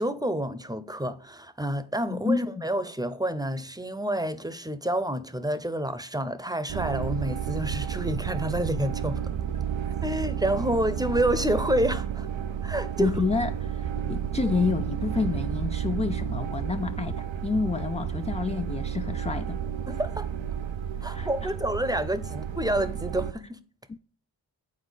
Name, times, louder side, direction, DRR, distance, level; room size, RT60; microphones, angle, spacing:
voice 1, 0.0-9.3 10.0-12.3 12.6-13.2 19.9-20.3 21.0-23.6, right 1 dB, 10° right, 0.7 m, -28 dB
voice 2, 2.1-2.7 13.0-19.6 21.0-21.5 23.9-24.0, left 4 dB, 15° left, 0.3 m, -29 dB
sound 1, 6.7-23.3, right 8 dB, 75° right, 0.7 m, -31 dB
8.4 x 4.3 x 4.0 m
cardioid pair, 45°, 45 cm